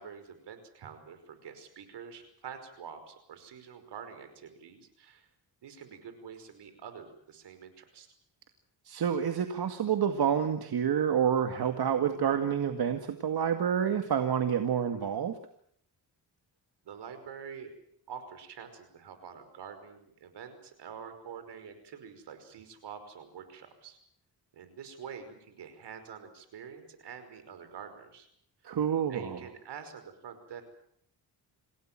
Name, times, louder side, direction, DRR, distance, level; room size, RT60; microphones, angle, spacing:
voice 1, 0.0-5.3 5.6-8.1 16.9-17.7 18.1-24.0 24.5-28.3 29.1-30.6, right 7 dB, 80° right, 9 dB, 5.5 m, -46 dB
voice 2, 8.9-15.3 28.6-29.4, right 8 dB, 65° right, 7 dB, 2.2 m, -28 dB
27.5 x 18.0 x 7.6 m, 0.68 s
cardioid pair, 85°, 41 cm